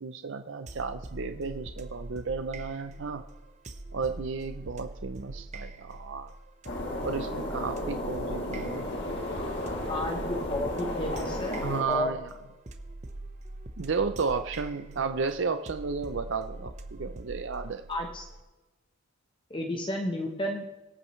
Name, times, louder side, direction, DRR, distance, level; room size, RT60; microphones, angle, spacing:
voice 1, 0.0-3.2 3.9-6.3 7.0-8.9 11.6-12.2 13.8-17.8, right 5 dB, 60° right, 8 dB, 0.6 m, -33 dB
sound 1, 0.7-18.4, right 2 dB, 35° right, 0.9 m, -43 dB
sound 2, 6.7-11.8, left 1 dB, 55° left, 2.7 m, -33 dB
voice 2, 9.9-12.1 17.9-18.3 19.5-20.6, left 1 dB, 25° left, 2 dB, 1.0 m, -32 dB
23.5 x 8.8 x 3.2 m, 1.2 s
head